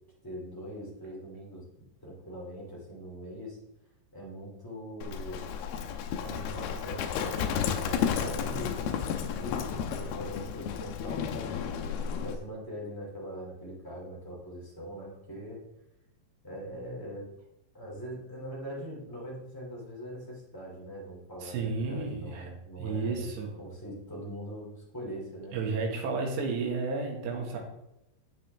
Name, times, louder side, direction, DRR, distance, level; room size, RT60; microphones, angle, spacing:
voice 1, 0.2-1.7 2.0-3.6 4.1-5.5 6.2-11.5 12.2-15.6 16.4-17.2 17.7-25.6, equal, 15° left, -4 dB, 0.8 m, -42 dB
Livestock farm animals working animals, 5.0-12.4, left 7 dB, 80° left, 2.3 m, -32 dB
voice 2, 21.4-22.5 22.8-23.5 25.5-27.6, right 4 dB, 75° right, 0 dB, 3.7 m, -32 dB
8.7 x 7.8 x 3.4 m, 0.87 s
omnidirectional pair, 5.1 m